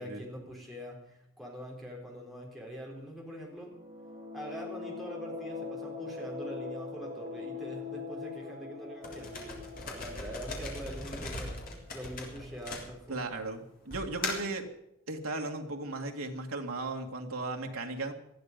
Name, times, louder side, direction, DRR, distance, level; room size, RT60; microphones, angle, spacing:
voice 1, 0.0-3.8 4.3-11.6 11.9-13.3, equal, ahead, -2 dB, 4.0 m, -44 dB
sound 1, 3.6-12.2, left 4 dB, 40° right, 7.4 m, -42 dB
sound 2, 9.0-13.3 13.9-14.6, left 2 dB, 40° left, 3.5 m, -39 dB
voice 2, 13.1-14.7 15.1-18.1, right 2 dB, 80° right, 2 dB, 2.1 m, -36 dB
19.5 x 13.0 x 5.3 m, 0.83 s
head